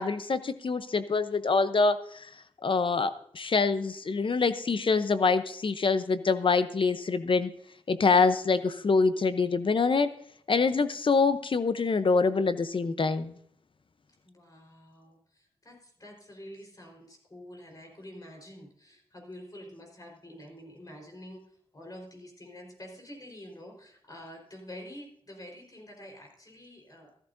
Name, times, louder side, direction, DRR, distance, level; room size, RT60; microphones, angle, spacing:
voice 1, 0.0-2.3 2.6-7.5 7.9-10.1 10.5-13.3, left 4 dB, 55° left, 11 dB, 0.8 m, -25 dB
voice 2, 14.2-27.2, left 1 dB, 35° left, 1 dB, 4.4 m, -47 dB
14.0 x 13.0 x 2.7 m, 0.66 s
cardioid pair, 55°, 10 cm